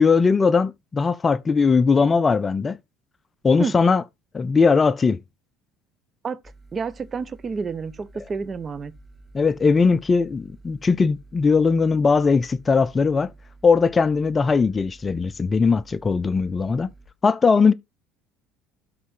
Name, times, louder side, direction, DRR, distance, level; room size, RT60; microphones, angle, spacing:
voice 1, 0.0-2.8 3.4-4.0 4.3-5.2 9.3-13.3 13.6-16.9 17.2-17.7, left 5 dB, 30° left, 0.5 m, -19 dB
sound 1, 6.4-17.1, right 3 dB, 15° right, 2.1 m, -50 dB
voice 2, 6.7-8.9, right 5 dB, 35° right, 0.9 m, -29 dB
12.0 x 4.1 x 3.7 m
hypercardioid pair, 70°, 0 cm